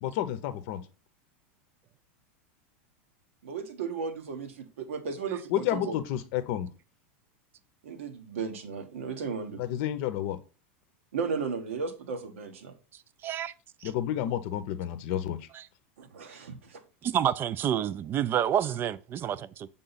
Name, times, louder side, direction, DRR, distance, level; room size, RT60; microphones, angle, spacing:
voice 1, 0.0-0.8 5.5-6.7 9.6-10.4 13.8-15.4, left 11 dB, 60° left, 0.7 m, -30 dB
voice 2, 3.4-5.9 7.8-9.6 11.1-12.7 16.0-16.8, right 5 dB, 90° right, 1.1 m, -35 dB
voice 3, 13.2-13.5 13.8-13.9 17.0-19.7, right 10 dB, 30° right, 0.4 m, -28 dB
6.8 x 3.7 x 4.0 m
supercardioid pair, 120°, 7 cm